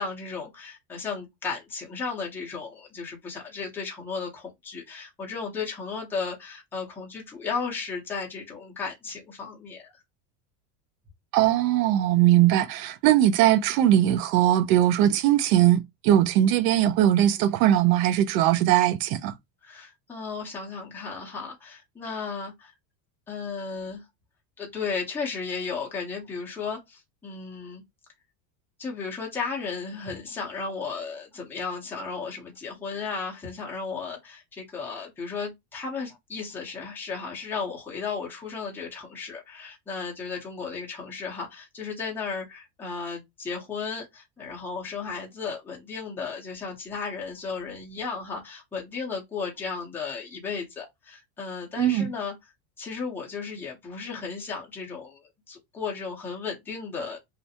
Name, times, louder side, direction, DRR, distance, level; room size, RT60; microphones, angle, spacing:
voice 1, 0.0-9.9 19.6-22.7 23.3-24.0 24.6-27.8 28.8-52.3 52.8-57.2, left 5 dB, 5° left, 0.5 m, -34 dB
voice 2, 11.3-19.3 51.8-52.1, right 12 dB, 80° right, 0.6 m, -20 dB
2.4 x 2.1 x 2.7 m
cardioid pair, 145°, 49 cm